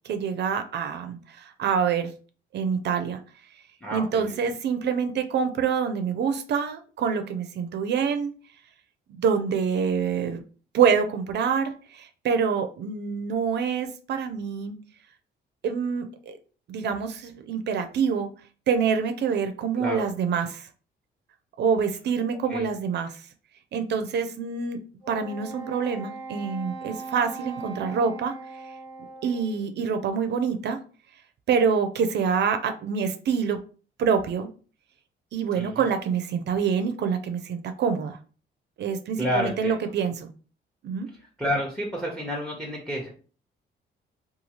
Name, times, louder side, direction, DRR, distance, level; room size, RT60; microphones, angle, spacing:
voice 1, 0.0-2.1 2.5-3.2 3.9-8.3 9.2-10.4 10.7-14.8 15.6-16.4 16.7-18.3 18.7-20.7 21.6-23.2 23.7-24.8 25.1-28.3 29.2-30.8 31.5-33.6 34.0-34.5 35.3-38.2 38.8-40.3 40.8-41.1, right 6 dB, 60° right, 8 dB, 0.4 m, -26 dB
voice 2, 3.8-4.3 19.8-20.1 22.5-22.7 35.6-35.9 39.2-39.8 41.4-43.1, equal, 5° left, -1 dB, 0.7 m, -29 dB
Wind instrument woodwind instrument, 25.0-29.6, right 3 dB, 85° left, 1.0 m, -40 dB
2.7 x 2.3 x 2.9 m, 0.38 s
cardioid pair, 90°, 20 cm